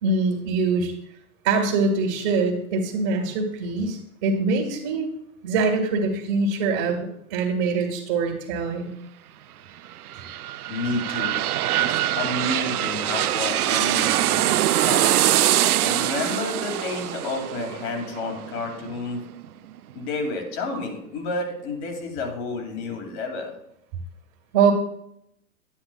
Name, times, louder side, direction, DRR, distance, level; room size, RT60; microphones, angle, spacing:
voice 1, 0.0-0.9 1.4-5.1 5.4-8.9 24.5-24.7, right 4 dB, 50° right, -1 dB, 1.8 m, -23 dB
sound 1, 9.8-19.5 19.9-20.0, right 13 dB, 85° right, 0.5 m, -24 dB
voice 2, 10.7-11.4 11.8-15.1 15.8-19.2 19.9-23.5, left 3 dB, 50° left, 3 dB, 2.4 m, -30 dB
10.0 x 9.9 x 2.3 m, 0.77 s
hypercardioid pair, 125°, 43 cm